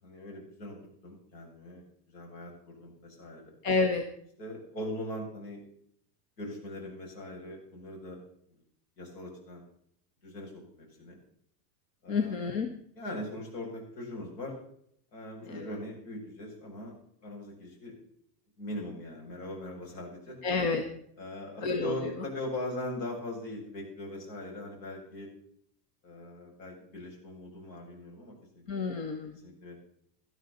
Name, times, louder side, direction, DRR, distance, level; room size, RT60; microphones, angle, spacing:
voice 1, 0.0-0.8 1.0-3.5 4.4-5.6 6.4-8.2 9.0-9.6 10.2-10.5 10.8-11.2 12.0-12.5 13.0-14.5 15.1-16.9 17.2-18.0 18.6-20.4 21.2-25.3 26.0-28.9 29.4-29.8, left 1 dB, 75° left, 0 dB, 7.5 m, -40 dB
voice 2, 3.6-4.0 12.1-12.7 15.4-15.7 20.4-20.8 21.6-22.2 28.7-29.4, left 4 dB, 50° left, 5 dB, 1.6 m, -29 dB
18.5 x 12.0 x 4.2 m, 0.67 s
supercardioid pair, 180°, 49 cm